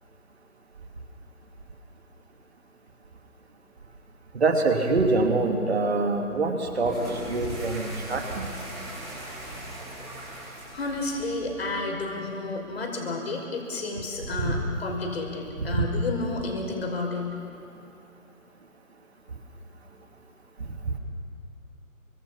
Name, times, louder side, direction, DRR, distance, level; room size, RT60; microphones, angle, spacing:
voice 1, 4.3-8.5 14.4-14.6 15.7-15.8, right 3 dB, 45° right, 3 dB, 3.1 m, -25 dB
sound 1, 6.7-11.8, right 1 dB, ahead, 6.2 m, -40 dB
voice 2, 10.7-17.3, left 3 dB, 45° left, 1 dB, 5.5 m, -31 dB
28.5 x 25.5 x 5.8 m, 2.8 s
figure-of-eight pair, 160°, 43 cm